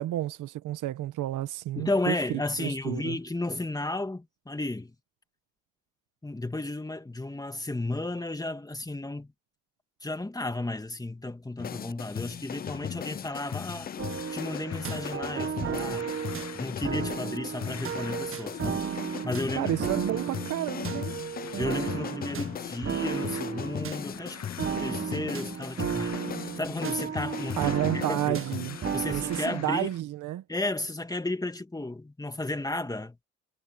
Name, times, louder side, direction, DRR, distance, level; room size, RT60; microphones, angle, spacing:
voice 1, 0.0-3.2 19.5-21.2 27.6-28.8 29.1-30.4, right 14 dB, 80° right, 1.3 m, -31 dB
voice 2, 1.8-4.9 6.2-9.3 10.0-13.9 14.3-16.1 16.5-19.7 21.6-26.2 26.6-28.4 28.9-29.9 30.5-33.2, left 2 dB, 10° left, 2.3 m, -33 dB
sound 1, 11.6-29.0, left 8 dB, 30° left, 0.4 m, -37 dB
sound 2, 13.2-30.0, left 9 dB, 60° left, 1.8 m, -48 dB
sound 3, 14.0-29.6, right 7 dB, 45° right, 1.5 m, -34 dB
cardioid pair, 90°, 30 cm